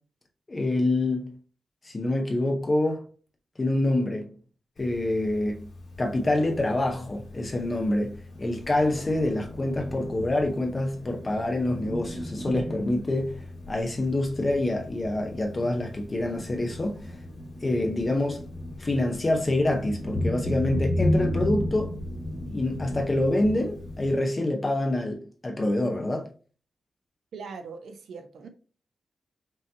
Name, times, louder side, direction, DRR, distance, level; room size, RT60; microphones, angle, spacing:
voice 1, 0.5-1.3 1.8-3.0 3.6-4.3 4.8-5.7 6.0-17.2 17.6-18.4 18.8-22.0 22.5-26.3, left 1 dB, 20° left, 0.6 m, -26 dB
Thunder, 4.8-24.1, left 1 dB, 75° left, 1.7 m, -34 dB
voice 2, 27.3-28.5, right 5 dB, 80° right, 0.7 m, -40 dB
5.4 x 2.8 x 2.7 m
wide cardioid pair, 180°, 0 cm